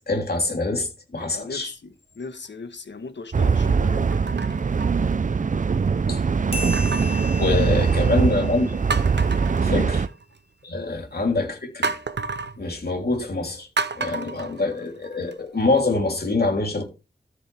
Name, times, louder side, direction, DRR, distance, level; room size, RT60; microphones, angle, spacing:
voice 1, 0.1-1.7 6.1-6.2 7.4-8.8 9.6-10.0 10.6-11.9 12.6-13.7 13.9-16.8, left 3 dB, 60° left, 3.3 m, -25 dB
voice 2, 1.2-4.1 7.1-7.6 9.6-9.9 10.7-10.9, left 4 dB, 85° left, 1.4 m, -37 dB
sound 1, 1.2-1.7 2.3-2.5 4.1-5.6 6.7-8.1 8.5-8.6 8.9-10.4 11.8-12.6 13.8-15.3 15.8-15.9, right 4 dB, 75° right, 0.8 m, -32 dB
sound 2, 3.3-10.1, right 5 dB, 45° right, 0.5 m, -22 dB
sound 3, 6.5-9.6, left 1 dB, 30° left, 2.4 m, -36 dB
13.5 x 6.5 x 3.5 m
wide cardioid pair, 85°, 18 cm